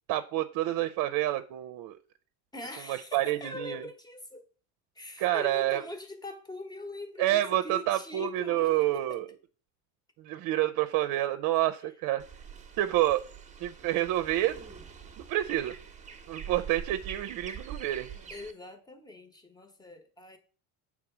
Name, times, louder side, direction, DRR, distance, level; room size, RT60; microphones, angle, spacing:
voice 1, 0.1-2.0 2.9-3.8 5.2-5.8 7.2-9.2 10.2-12.2 12.8-13.2 13.6-14.6 15.2-15.7 16.3-18.1, right 14 dB, 55° right, 0.7 m, -28 dB
voice 2, 2.5-4.5 4.9-9.2 18.3-20.4, left 2 dB, 10° left, 1.2 m, -42 dB
sound 1, 12.2-18.5, right 7 dB, 20° right, 1.0 m, -45 dB
7.5 x 3.7 x 6.0 m
cardioid pair, 130°, 39 cm